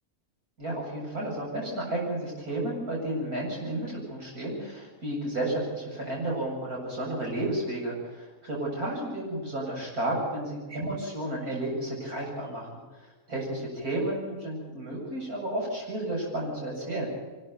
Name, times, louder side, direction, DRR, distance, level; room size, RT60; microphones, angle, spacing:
voice 1, 0.6-12.7 13.3-17.1, right 1 dB, 85° right, -2 dB, 8.7 m, -32 dB
24.0 x 14.0 x 9.4 m, 1.3 s
omnidirectional pair, 1.5 m